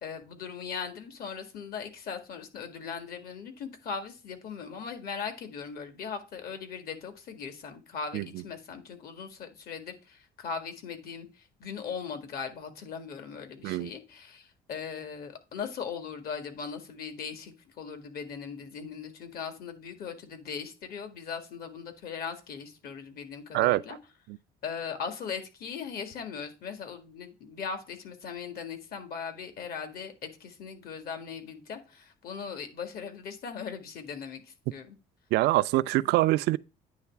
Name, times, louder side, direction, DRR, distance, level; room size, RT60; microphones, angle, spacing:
voice 1, 0.0-24.0 24.6-35.0, left 6 dB, 60° left, 1.8 m, -39 dB
voice 2, 35.3-36.6, right 18 dB, 85° right, 0.4 m, -24 dB
9.4 x 3.2 x 5.8 m
cardioid pair, 110°, 17 cm